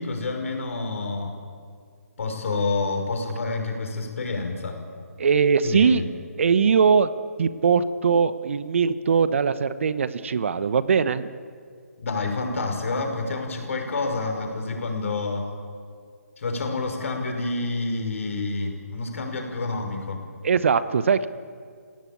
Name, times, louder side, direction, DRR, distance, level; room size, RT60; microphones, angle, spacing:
voice 1, 0.0-1.4 2.2-4.8 5.6-6.1 12.0-15.5 16.4-20.3, left 3 dB, 60° left, 3 dB, 5.6 m, -28 dB
voice 2, 5.2-6.0 6.4-7.1 7.4-11.3 20.4-21.3, right 6 dB, 55° right, 14 dB, 1.1 m, -21 dB
29.5 x 17.0 x 8.7 m, 2.1 s
figure-of-eight pair, 145°, 8 cm